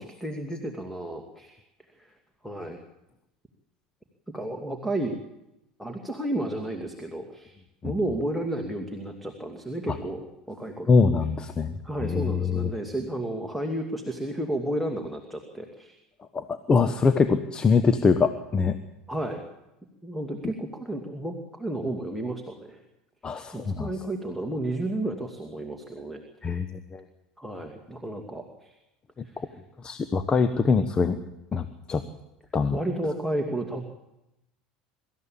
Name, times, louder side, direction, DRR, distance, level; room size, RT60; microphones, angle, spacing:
voice 1, 0.0-1.6 2.0-2.1 2.4-2.8 4.3-5.2 5.8-7.5 7.8-10.9 11.8-16.0 19.1-19.4 20.0-22.8 23.5-26.2 27.4-28.8 29.2-29.5 32.7-33.9, right 1 dB, ahead, 4 dB, 2.4 m, -32 dB
voice 2, 10.9-11.7 12.0-12.7 16.3-18.8 23.2-23.9 26.4-27.0 29.8-31.2 31.5-32.0 32.5-32.8, left 4 dB, 25° left, 9 dB, 1.2 m, -23 dB
24.5 x 13.5 x 8.7 m, 0.92 s
figure-of-eight pair, 70°, 4 cm